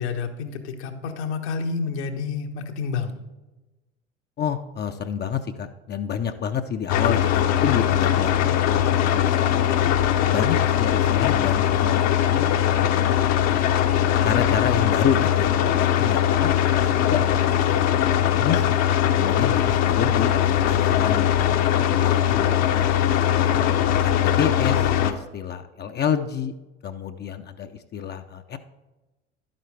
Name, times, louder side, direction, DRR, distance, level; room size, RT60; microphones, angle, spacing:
voice 1, 0.0-3.2, left 5 dB, 70° left, 4 dB, 1.3 m, -29 dB
voice 2, 4.4-8.8 9.1-9.9 10.3-13.2 14.2-18.7 19.2-22.5 22.7-22.9 23.2-23.5 24.0-26.5 26.8-28.6, left 8 dB, 30° left, 7 dB, 0.6 m, -29 dB
sound 1, 6.9-25.1, left 10 dB, 50° left, 0.9 m, -21 dB
11.5 x 9.1 x 3.3 m, 1.1 s
hypercardioid pair, 75°, 34 cm